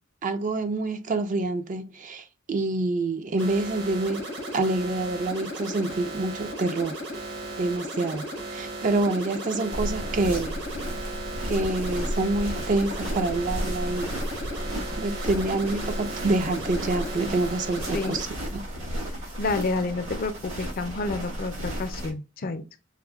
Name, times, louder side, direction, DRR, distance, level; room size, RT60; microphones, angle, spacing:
voice 1, 0.2-4.2 4.5-7.0 7.6-10.6 11.4-14.3 15.0-18.3 18.5-18.7, right 2 dB, 40° right, 0.4 m, -27 dB
sound 1, 3.4-18.2, right 1 dB, 60° right, 1.0 m, -36 dB
sound 2, 9.7-22.1, equal, 90° right, 1.6 m, -33 dB
voice 2, 19.4-22.6, left 3 dB, 45° left, 0.4 m, -29 dB
4.6 x 2.1 x 2.3 m
head